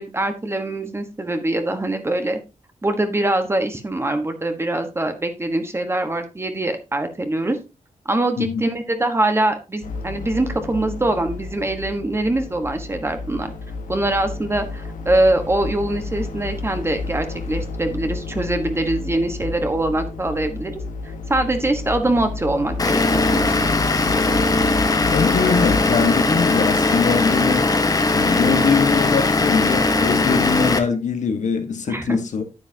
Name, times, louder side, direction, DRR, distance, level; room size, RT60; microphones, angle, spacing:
voice 1, 0.0-2.4 2.8-7.6 8.0-13.5 13.9-20.8 21.3-23.7 31.9-32.2, right 1 dB, 20° right, 1.3 m, -23 dB
sound 1, 9.8-26.0, left 3 dB, 90° left, 1.6 m, -31 dB
Vehicle / Engine, 22.8-30.8, left 3 dB, 30° left, 1.1 m, -19 dB
voice 2, 25.1-27.7 28.1-32.4, left 5 dB, 70° left, 1.5 m, -22 dB
9.7 x 9.1 x 2.8 m
wide cardioid pair, 130°, 13 cm